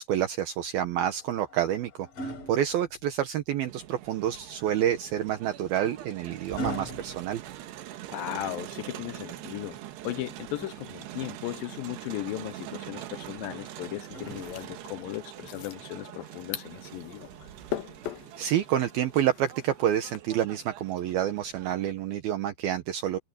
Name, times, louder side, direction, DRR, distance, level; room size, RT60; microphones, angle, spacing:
voice 1, 0.0-7.4 18.4-23.2, right 11 dB, 70° right, 2.9 m, -28 dB
sound 1, 1.0-3.5 5.1-8.3 10.0-11.2 13.2-15.0 16.2-16.4, equal, 40° left, 4.7 m, -43 dB
Crowd, 3.7-21.9, right 13 dB, 90° right, 3.5 m, -44 dB
voice 2, 8.1-9.8 10.0-17.5, left 16 dB, 85° left, 2.0 m, -37 dB
sound 2, 14.2-20.2, left 12 dB, 70° left, 2.9 m, -42 dB
omnidirectional pair, 4.7 m